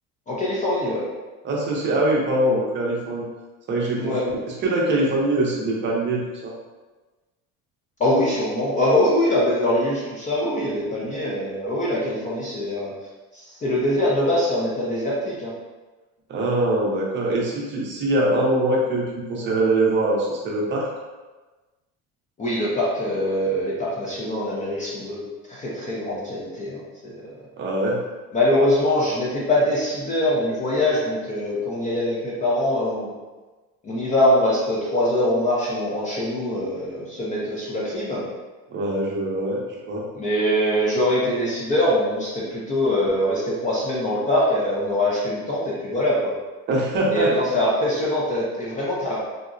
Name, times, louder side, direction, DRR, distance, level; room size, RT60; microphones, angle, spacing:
voice 1, 0.3-1.0 4.0-4.2 8.0-12.9 13.3-15.5 22.4-25.2 25.5-27.1 28.3-33.1 33.8-38.3 40.2-46.3 47.1-49.2, left 1 dB, 25° left, -6 dB, 0.4 m, -23 dB
voice 2, 1.4-3.2 3.7-4.2 4.5-6.5 16.3-20.9 27.6-28.0 38.7-40.0 46.7-47.3, right 1 dB, 35° right, -3 dB, 0.6 m, -23 dB
3.6 x 2.0 x 2.5 m, 1.2 s
cardioid pair, 160°, 34 cm